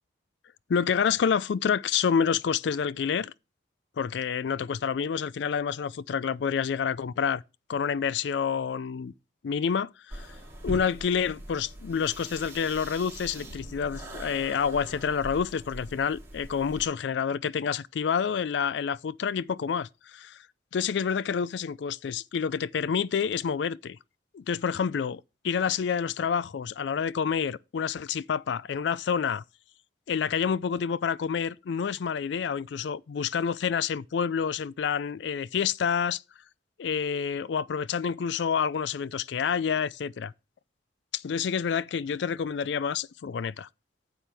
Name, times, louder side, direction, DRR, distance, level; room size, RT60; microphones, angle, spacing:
voice 1, 0.7-3.3 4.0-7.4 7.7-9.1 9.4-10.3 10.6-20.4 20.7-24.0 24.3-29.4 30.1-36.2 36.8-40.3 41.2-43.7, left 7 dB, 65° left, 0.4 m, -28 dB
sound 1, 10.1-16.8, right 1 dB, 15° right, 3.2 m, -42 dB
sound 2, 13.3-16.4, right 1 dB, 45° left, 5.8 m, -54 dB
10.0 x 7.8 x 3.4 m
head